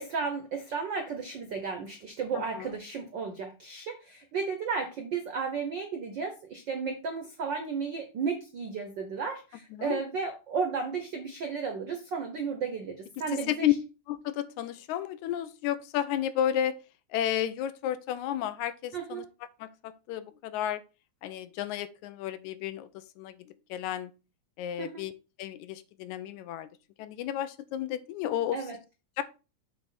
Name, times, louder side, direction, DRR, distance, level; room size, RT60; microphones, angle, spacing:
voice 1, 0.0-13.7 18.9-19.3 24.8-25.0 28.5-28.8, right 5 dB, 75° right, 1.0 m, -34 dB
voice 2, 9.7-10.0 13.5-13.7 14.1-16.7 17.1-19.2 19.6-20.8 21.2-24.1 24.6-25.1 25.4-26.7 27.0-28.6 29.2-29.3, left 11 dB, 80° left, 2.0 m, -32 dB
8.0 x 3.4 x 5.7 m
omnidirectional pair, 3.5 m